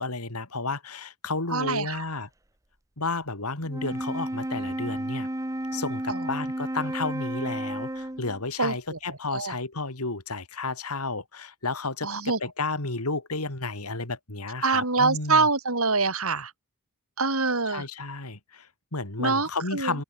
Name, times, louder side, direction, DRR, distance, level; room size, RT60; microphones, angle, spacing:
voice 1, 0.0-2.3 3.0-5.3 5.7-15.5 17.7-20.0, left 3 dB, 85° left, 3.6 m, -32 dB
voice 2, 1.5-2.0 6.1-6.3 8.6-9.5 12.0-12.4 14.6-16.5 17.2-17.8 19.2-20.0, right 4 dB, 70° right, 6.6 m, -25 dB
Wind instrument woodwind instrument, 3.6-8.4, right 1 dB, 15° right, 1.0 m, -32 dB
open air
head